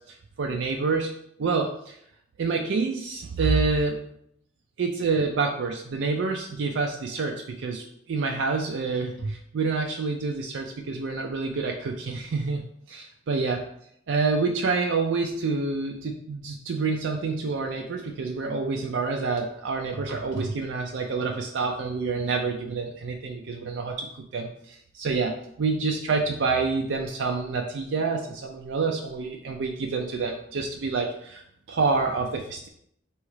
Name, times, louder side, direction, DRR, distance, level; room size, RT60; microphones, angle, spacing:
voice 1, 0.1-1.1 1.4-2.0 2.4-4.0 4.8-12.6 12.9-13.6 14.1-24.1 24.3-31.4 31.7-32.7, right 4 dB, 75° right, 2 dB, 0.4 m, -27 dB
3.2 x 3.1 x 4.7 m, 0.70 s
head